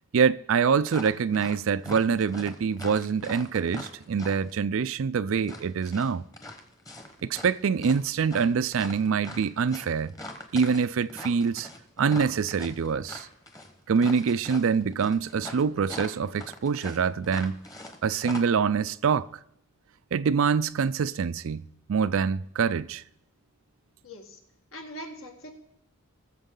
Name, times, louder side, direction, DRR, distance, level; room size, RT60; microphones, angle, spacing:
voice 1, 0.1-6.2 7.2-10.1 10.5-11.7 12.0-13.3 13.9-17.6 18.0-19.3 20.1-23.0, right 6 dB, 65° right, 0.4 m, -25 dB
sound 1, 0.9-1.6 1.8-4.5 5.4-7.5 7.8-18.0 18.2-18.4, left 1 dB, 15° left, 1.1 m, -41 dB
voice 2, 24.0-24.4 24.7-25.5, equal, 65° left, 1.8 m, -41 dB
19.5 x 7.1 x 3.8 m
head